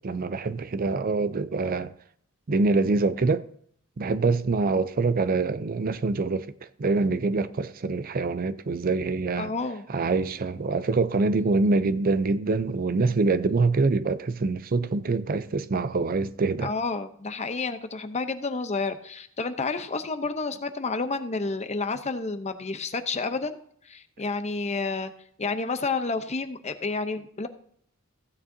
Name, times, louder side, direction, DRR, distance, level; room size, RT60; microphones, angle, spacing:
voice 1, 0.0-1.9 2.5-3.4 4.0-9.5 9.9-16.7, right 3 dB, 45° right, 0.5 m, -25 dB
voice 2, 9.4-9.9 16.6-23.6 23.8-25.1 25.4-27.5, left 4 dB, 30° left, 0.7 m, -30 dB
15.5 x 9.1 x 2.7 m
head